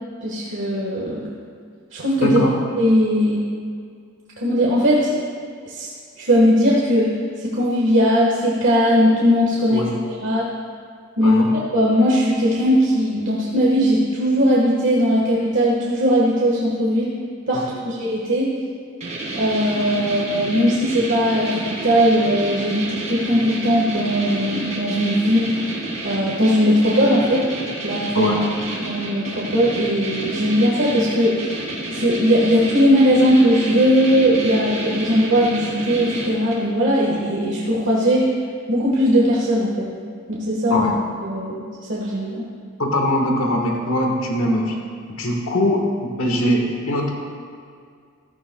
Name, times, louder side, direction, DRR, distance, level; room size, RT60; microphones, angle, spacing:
voice 1, 0.2-1.2 1.9-2.4 2.8-3.4 4.4-5.1 5.6-5.9 6.2-7.1 7.4-9.9 10.2-10.5 11.2-11.4 11.7-17.1 17.5-18.5 19.3-25.7 26.0-27.5 27.8-28.3 28.8-31.5 31.9-38.3 38.7-39.9 40.3-40.9 41.2-42.4, equal, 60° right, -5 dB, 1.5 m, -19 dB
voice 2, 2.2-2.6 9.7-10.0 11.2-11.5 17.5-17.8 28.1-28.5 40.7-40.9 42.8-44.8 45.1-47.2, left 1 dB, 85° left, 1 dB, 1.5 m, -21 dB
sound 1, 19.0-36.7, right 2 dB, 35° right, 2.1 m, -30 dB
14.5 x 14.0 x 2.3 m, 2.2 s
head